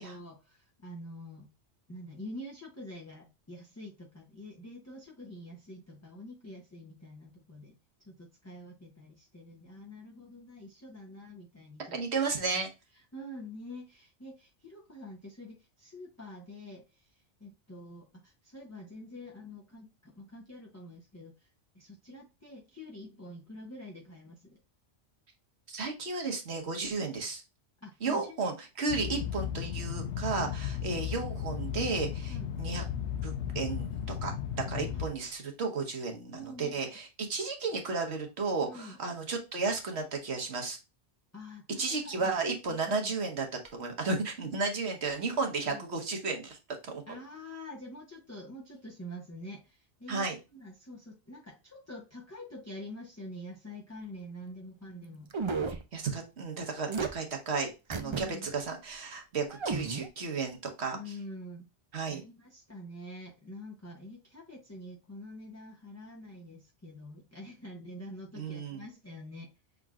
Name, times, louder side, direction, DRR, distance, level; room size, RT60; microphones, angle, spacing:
voice 1, 0.0-1.5 1.9-7.8 8.0-12.0 12.5-12.6 12.9-21.5 21.7-24.6 27.1-27.2 27.8-28.6 29.0-29.3 30.4-30.6 32.3-32.5 34.9-35.0 36.3-36.8 38.6-39.0 41.3-42.4 42.7-43.1 45.7-45.8 47.1-55.3 58.0-58.5 60.9-61.7 62.1-69.5, left 1 dB, 15° left, 0 dB, 0.6 m, -46 dB
voice 2, 11.9-12.7 25.7-27.4 28.0-32.8 33.2-34.3 34.7-40.8 41.8-43.5 43.7-46.6 46.8-47.0 50.1-50.4 55.7-61.0 61.9-62.2 68.4-68.8, right 4 dB, 65° right, 3 dB, 1.4 m, -33 dB
sound 1, 28.9-35.1, left 8 dB, 75° left, 0.9 m, -35 dB
sound 2, 55.3-55.8 56.9-57.1 57.9-58.2 58.6-58.7 59.5-60.1, right 5 dB, 50° right, 0.3 m, -32 dB
5.8 x 3.8 x 2.4 m, 0.27 s
omnidirectional pair, 1.2 m